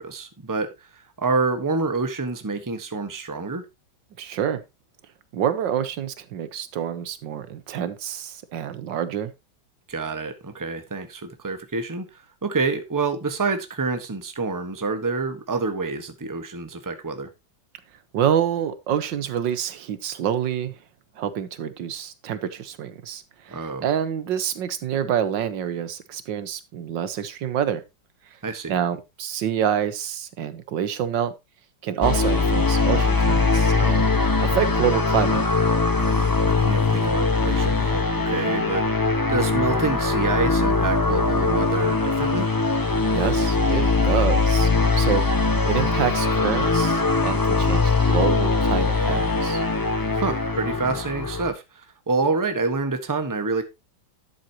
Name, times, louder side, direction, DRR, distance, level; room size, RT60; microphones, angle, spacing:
voice 1, 0.0-3.6 9.9-17.3 23.5-23.9 28.4-28.7 36.0-42.5 50.1-53.6, right 3 dB, 10° right, 1.1 m, -27 dB
voice 2, 4.2-4.6 5.3-9.3 18.1-20.7 21.2-23.6 23.8-27.8 28.7-31.3 31.8-34.1 34.4-35.4 43.1-44.7 45.0-45.2 45.6-49.6, right 9 dB, 80° right, 1.7 m, -27 dB
sound 1, 32.0-51.5, left 3 dB, 15° left, 0.9 m, -21 dB
11.5 x 7.7 x 2.9 m
omnidirectional pair, 2.0 m